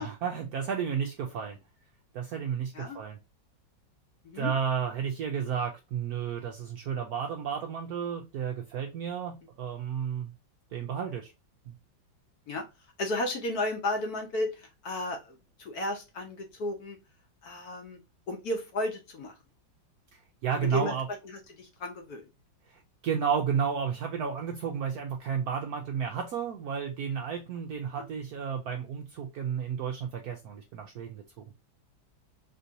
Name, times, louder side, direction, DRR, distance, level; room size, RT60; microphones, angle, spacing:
voice 1, 0.0-1.6 2.1-3.2 4.3-10.3 10.7-11.3 11.7-11.8 20.1-21.1 22.7-31.4, right 7 dB, 75° right, 2 dB, 0.9 m, -32 dB
voice 2, 13.0-17.0 17.4-18.0 18.3-19.3 20.6-20.9 21.2-22.3 27.9-28.1, left 2 dB, 60° left, 4 dB, 1.1 m, -33 dB
3.7 x 2.7 x 2.6 m, 0.25 s
omnidirectional pair, 2.1 m